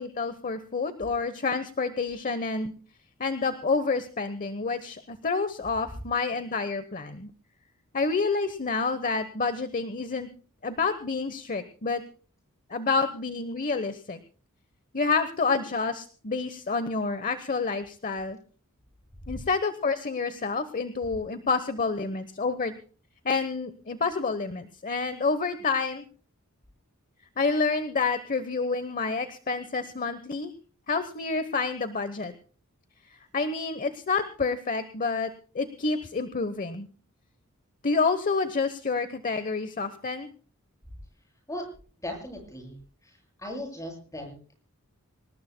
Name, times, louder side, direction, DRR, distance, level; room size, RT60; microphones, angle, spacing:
voice 1, 0.0-2.7 3.2-7.3 7.9-10.3 10.6-12.0 12.7-14.2 14.9-18.4 19.3-22.7 23.2-26.0 27.4-30.5 30.9-32.3 33.3-36.9 37.8-40.3, left 4 dB, 40° left, 12 dB, 1.0 m, -28 dB
voice 2, 42.0-42.7 43.0-43.1 43.4-44.5, left 1 dB, 15° left, 2 dB, 7.3 m, -37 dB
26.0 x 19.5 x 2.2 m, 0.40 s
head